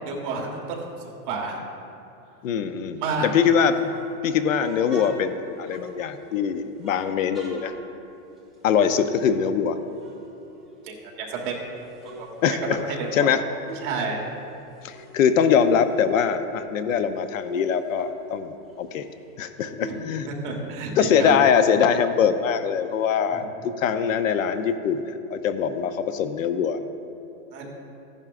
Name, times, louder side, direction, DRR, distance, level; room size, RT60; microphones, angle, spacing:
voice 1, 0.1-0.8 1.0-1.6 3.0-3.3 10.8-11.5 12.2-12.6 12.8-13.3 13.8-14.2 20.3-21.3 23.3-23.5 27.5-27.7, right 4 dB, 35° right, -1 dB, 1.5 m, -30 dB
voice 2, 2.4-3.8 4.2-7.7 8.6-9.8 12.4-12.8 13.1-13.4 14.8-19.1 19.4-20.3 21.0-26.8, left 7 dB, 60° left, 10 dB, 0.6 m, -23 dB
sound 1, 3.7-6.3 6.8-9.7 9.9-11.3 11.7-13.9 14.2-16.8 17.2-17.3 17.5-20.9, right 2 dB, ahead, 0.5 m, -44 dB
15.5 x 10.5 x 2.5 m, 2.7 s
supercardioid pair, 175°, 45 cm